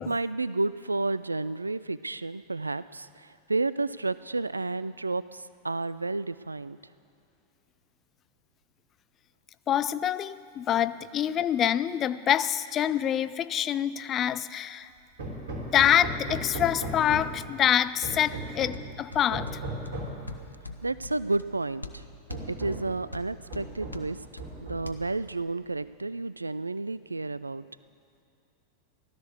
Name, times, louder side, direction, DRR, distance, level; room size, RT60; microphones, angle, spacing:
voice 1, 0.0-6.8 20.8-22.0 22.5-24.2 24.6-27.6, right 3 dB, 80° right, 17 dB, 0.4 m, -31 dB
voice 2, 9.7-14.9 15.7-19.6, left 10 dB, 30° left, 16 dB, 0.4 m, -26 dB
Hammer, 15.2-17.5 18.0-18.9 19.3-20.2 21.3-21.4 21.8-21.9 22.3-23.0 23.5-24.1 24.4-25.1, right 1 dB, 60° right, 3.4 m, -36 dB
sound 1, 18.3-24.9, left 3 dB, 85° left, 0.9 m, -45 dB
16.5 x 12.5 x 6.7 m, 2.5 s
figure-of-eight pair, 90°, 0 cm